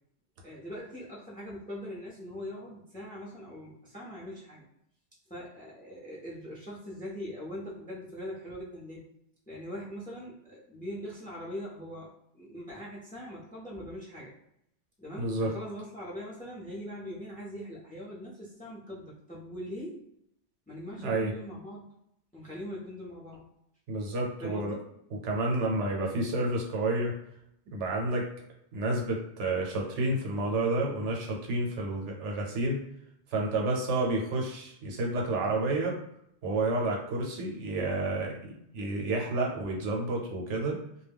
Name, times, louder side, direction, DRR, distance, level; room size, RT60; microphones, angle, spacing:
voice 1, 0.4-4.6 5.3-9.1 9.5-14.3 15.0-20.0 20.7-21.9 22.3-23.5 24.4-24.8, equal, 10° left, -5 dB, 0.5 m, -41 dB
voice 2, 15.2-15.5 21.0-21.3 23.9-24.8 25.2-27.1 27.7-28.3 28.7-32.8 33.3-36.0 36.4-40.8, right 2 dB, 85° right, 0 dB, 1.0 m, -30 dB
2.2 x 2.2 x 3.4 m, 0.76 s
omnidirectional pair, 1.2 m